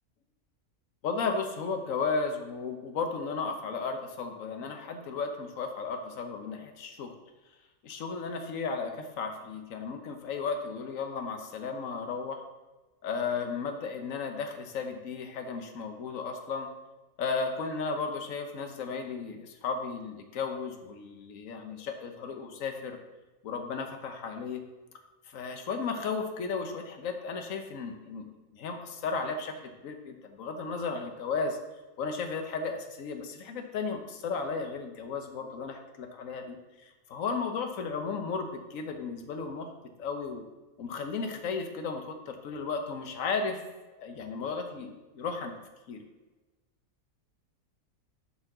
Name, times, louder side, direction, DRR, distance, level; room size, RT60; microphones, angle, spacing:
voice 1, 1.0-7.1 7.8-12.4 13.0-16.7 17.2-23.0 23.4-24.6 25.2-31.6 32.0-39.7 40.0-40.4 40.8-43.6 43.9-45.5 45.9-46.0, left 4 dB, 65° left, 5 dB, 1.3 m, -34 dB
7.7 x 4.1 x 6.0 m, 1.2 s
omnidirectional pair, 1.5 m